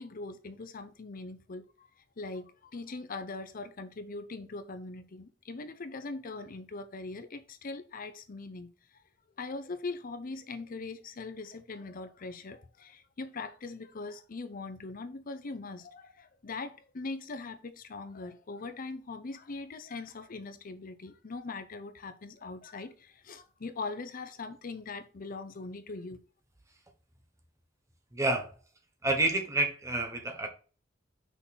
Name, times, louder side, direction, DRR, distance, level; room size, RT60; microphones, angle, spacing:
voice 1, 0.0-1.9 2.2-8.7 9.4-26.2, left 3 dB, 45° left, 0.6 m, -41 dB
voice 2, 28.1-28.6 29.0-30.5, right 2 dB, 15° right, 1.1 m, -29 dB
6.0 x 3.9 x 4.0 m
head